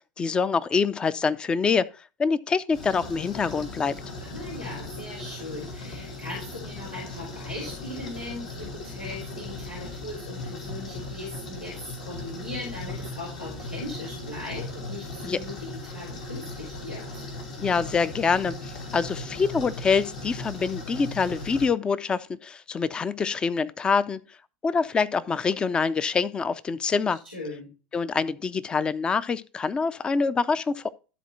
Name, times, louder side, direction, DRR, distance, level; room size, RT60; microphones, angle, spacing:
voice 1, 0.2-1.9 2.2-4.0 15.2-15.4 17.6-24.2 24.6-27.2 27.9-30.9, left 5 dB, 20° left, 0.5 m, -25 dB
sound 1, 2.7-21.7, left 2 dB, 60° left, 3.0 m, -38 dB
voice 2, 4.2-17.3 27.3-27.7, left 2 dB, 90° left, 3.5 m, -39 dB
12.5 x 4.3 x 4.2 m
figure-of-eight pair, 80°, 5 cm